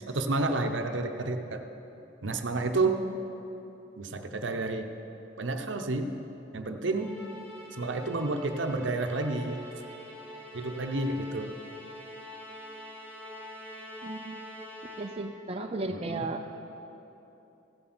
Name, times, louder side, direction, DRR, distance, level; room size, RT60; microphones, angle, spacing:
voice 1, 0.1-1.6 2.2-3.0 4.0-4.9 5.4-6.1 6.5-7.1 7.8-9.6 10.5-11.5 15.9-16.2, right 2 dB, 75° right, 6 dB, 0.8 m, -30 dB
Musical instrument, 6.9-15.4, left 1 dB, 10° left, 2.4 m, -45 dB
voice 2, 14.0-14.4 15.0-16.4, right 2 dB, 30° right, 4 dB, 0.5 m, -35 dB
15.5 x 7.8 x 6.1 m, 3.0 s
head